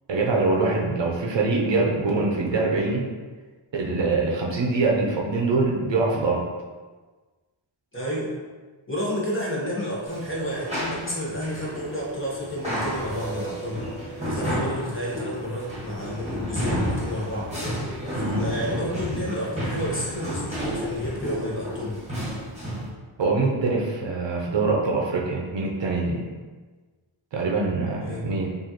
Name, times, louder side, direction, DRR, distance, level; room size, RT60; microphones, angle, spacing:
voice 1, 0.1-3.1 3.7-6.5 18.1-18.4 23.2-26.3 27.3-28.6, right 3 dB, 60° right, -1 dB, 0.7 m, -24 dB
voice 2, 7.9-8.3 8.9-13.8 14.2-17.5 18.1-22.0 28.0-28.3, equal, 25° left, -6 dB, 1.1 m, -30 dB
sound 1, 10.1-22.9, equal, 15° right, 1.4 m, -31 dB
4.8 x 2.6 x 2.9 m, 1.3 s
wide cardioid pair, 130°, 50 cm